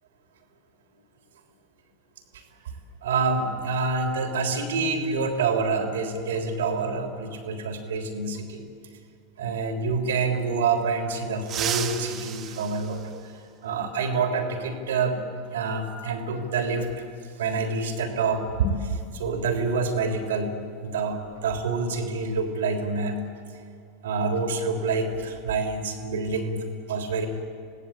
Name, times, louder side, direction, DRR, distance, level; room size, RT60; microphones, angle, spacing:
voice 1, 3.0-8.7 9.4-15.2 15.5-17.0 17.4-20.5 20.8-23.2 24.0-27.3, right 4 dB, 70° right, 3 dB, 3.6 m, -27 dB
sound 1, 11.4-13.8 15.5-15.6 16.8-16.9 18.5-18.7 19.0-19.2 19.7-21.9 22.2-22.4 22.8-23.3, right 9 dB, 40° right, 2.3 m, -36 dB
27.5 x 18.0 x 8.8 m, 2.3 s
figure-of-eight pair, 85°, 0 cm